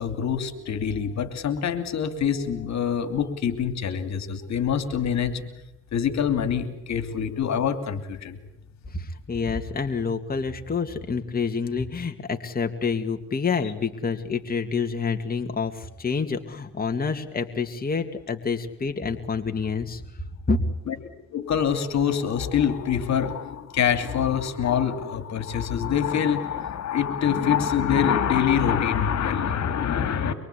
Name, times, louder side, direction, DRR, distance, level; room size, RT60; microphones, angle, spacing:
voice 1, 0.0-5.4 5.9-8.4 20.9-21.0 21.3-30.3, left 8 dB, 65° left, 10 dB, 2.8 m, -25 dB
voice 2, 8.9-20.0 20.5-20.6, left 5 dB, 30° left, 5 dB, 2.3 m, -28 dB
24.5 x 23.5 x 8.5 m, 0.83 s
cardioid pair, 90°, 30 cm